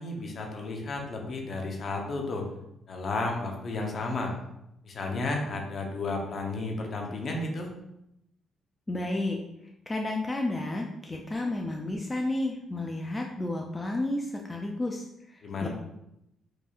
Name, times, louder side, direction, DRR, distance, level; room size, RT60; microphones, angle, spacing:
voice 1, 0.0-2.5 2.9-4.3 4.8-7.7 15.4-15.7, left 2 dB, 50° left, 2 dB, 0.8 m, -32 dB
voice 2, 8.9-9.4 9.9-15.7, left 2 dB, 20° left, 1 dB, 0.4 m, -32 dB
4.7 x 2.6 x 2.4 m, 0.83 s
cardioid pair, 90°, 0 cm